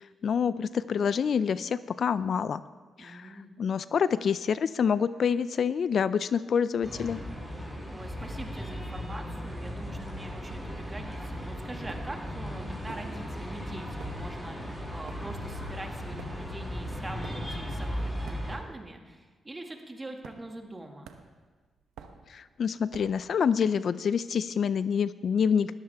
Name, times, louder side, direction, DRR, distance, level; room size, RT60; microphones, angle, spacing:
voice 1, 0.0-2.6 3.0-3.3 3.6-7.2 22.3-25.8, left 7 dB, 65° left, 16 dB, 0.4 m, -27 dB
voice 2, 3.0-3.5 7.9-21.1, right 2 dB, 25° right, 3 dB, 2.0 m, -43 dB
sound 1, 6.8-18.6, equal, ahead, 5.3 m, -37 dB
sound 2, 11.9-12.3 12.9-13.5 13.8-18.9 19.2-19.5 20.2-20.7 21.0-23.3, right 6 dB, 90° right, 0.9 m, -50 dB
19.5 x 13.5 x 3.5 m, 1.4 s
cardioid pair, 65°, 0 cm